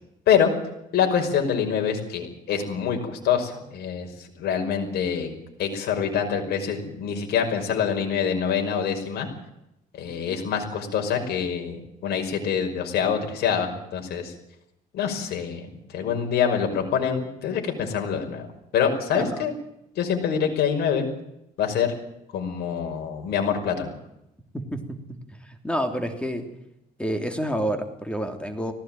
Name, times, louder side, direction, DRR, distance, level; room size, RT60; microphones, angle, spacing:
voice 1, 0.9-4.1 4.4-5.3 5.6-9.3 9.9-14.3 14.9-15.6 15.9-18.5 18.7-19.5 20.0-21.1 21.6-21.9 22.3-23.9, left 7 dB, 70° left, 4 dB, 5.7 m, -25 dB
voice 2, 24.5-25.0 25.4-26.5 27.0-28.7, equal, 5° left, 6 dB, 3.0 m, -28 dB
19.0 x 17.5 x 9.2 m, 0.85 s
cardioid pair, 110°, 17 cm